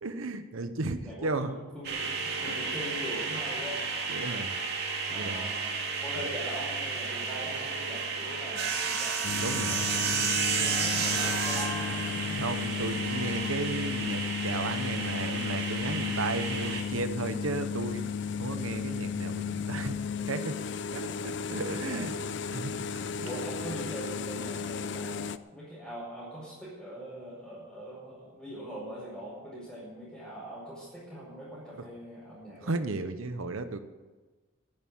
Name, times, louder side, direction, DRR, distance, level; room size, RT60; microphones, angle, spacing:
voice 1, 0.0-1.6 4.1-4.5 5.1-5.5 6.2-6.3 9.4-9.8 12.4-18.0 18.4-20.0 20.3-20.6 20.9-22.1 22.5-23.3 31.8-31.9 32.6-33.8, right 3 dB, 75° right, 9 dB, 0.9 m, -34 dB
voice 2, 1.0-3.8 5.1-5.6 6.0-12.4 20.9-21.3 21.8-22.2 23.2-32.7, right 1 dB, 5° left, -10 dB, 5.3 m, -42 dB
sound 1, 1.8-16.8, right 5 dB, 50° right, 2.6 m, -32 dB
sound 2, 9.2-25.4, left 6 dB, 55° left, 0.5 m, -34 dB
11.0 x 10.5 x 9.2 m, 1.3 s
head